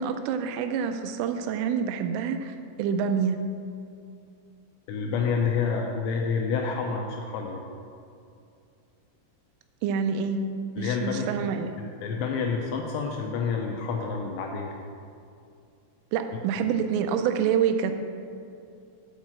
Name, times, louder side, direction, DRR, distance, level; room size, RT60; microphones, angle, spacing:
voice 1, 0.0-3.4 9.8-10.4 10.8-11.7 16.1-17.9, right 7 dB, 85° right, 8 dB, 3.0 m, -27 dB
voice 2, 4.9-7.6 10.8-11.3 11.8-14.7, left 5 dB, 85° left, 1 dB, 2.5 m, -28 dB
9.2 x 4.3 x 7.3 m, 2.4 s
omnidirectional pair, 5.8 m